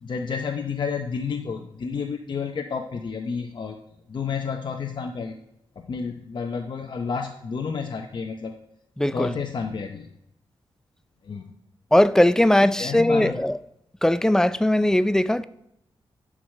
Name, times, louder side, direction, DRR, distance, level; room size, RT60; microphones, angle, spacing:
voice 1, 0.0-3.8 4.1-5.4 5.8-8.5 9.1-10.1 11.2-11.5 12.6-13.4, left 5 dB, 55° left, 0.7 m, -30 dB
voice 2, 9.0-9.3 11.9-13.6 14.0-15.4, left 1 dB, 5° left, 0.4 m, -19 dB
11.0 x 4.7 x 6.4 m
wide cardioid pair, 95°, 9 cm